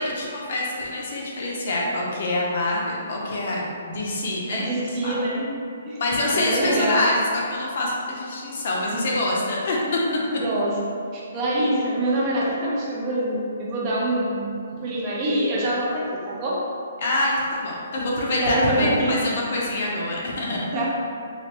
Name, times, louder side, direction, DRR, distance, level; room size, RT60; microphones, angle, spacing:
voice 1, 0.0-5.2 6.0-10.2 17.0-20.7, left 1 dB, 45° left, -3 dB, 0.6 m, -25 dB
voice 2, 4.5-5.5 5.8-6.0 6.3-7.1 8.9-9.0 10.4-10.8 11.1-14.5 14.8-16.6 18.4-19.2 20.7-20.9, right 1 dB, 25° right, -5 dB, 0.4 m, -25 dB
3.2 x 2.4 x 2.8 m, 2.4 s
hypercardioid pair, 175°, 0 cm